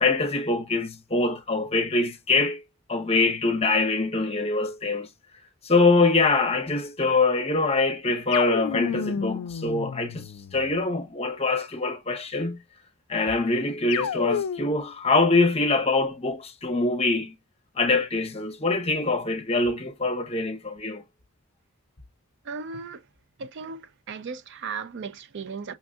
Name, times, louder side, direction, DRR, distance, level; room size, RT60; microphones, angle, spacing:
voice 1, 0.0-2.6 2.9-5.1 5.6-10.2 10.5-12.6 13.1-17.3 17.8-21.0, left 3 dB, 30° left, 0.7 m, -24 dB
sound 1, 8.3-10.8 13.9-14.9, left 7 dB, 85° left, 0.4 m, -31 dB
voice 2, 22.5-23.0 23.4-23.8 24.1-25.7, right 5 dB, 55° right, 0.4 m, -36 dB
5.7 x 2.6 x 2.3 m
head